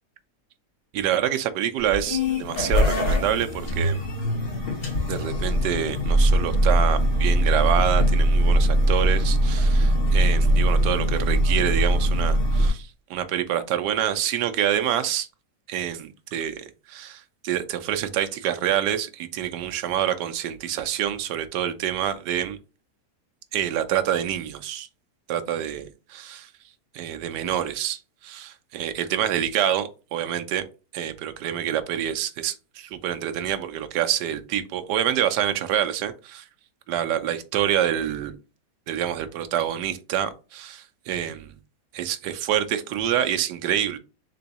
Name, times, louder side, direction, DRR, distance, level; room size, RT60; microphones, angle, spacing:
voice 1, 0.9-4.0 5.1-15.3 15.7-22.6 23.5-24.9 25.3-26.5 26.9-30.6 30.9-36.4 36.9-38.3 38.9-41.5 41.9-44.0, right 10 dB, 85° right, 9 dB, 1.2 m, -27 dB
sound 1, 1.8-12.7, right 1 dB, 35° left, 1.5 m, -21 dB
3.8 x 3.4 x 4.0 m, 0.33 s
omnidirectional pair, 1.8 m